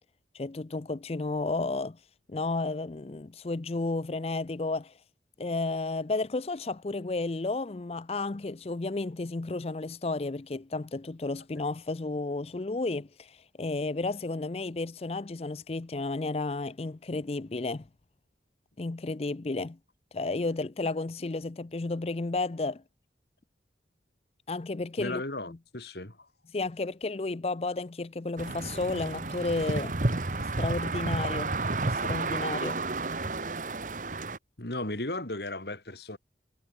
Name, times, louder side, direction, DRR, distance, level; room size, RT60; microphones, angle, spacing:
voice 1, 0.3-2.0 2.3-4.9 5.4-17.9 18.8-19.8 20.1-22.8 24.5-25.2 25.5-25.6 26.5-29.9 30.6-31.5 31.8-32.8, left 3 dB, 35° left, 0.5 m, -32 dB
voice 2, 25.0-26.3 34.6-36.2, left 2 dB, 70° left, 3.4 m, -35 dB
sound 1, 28.4-34.4, right 2 dB, 45° right, 1.2 m, -31 dB
head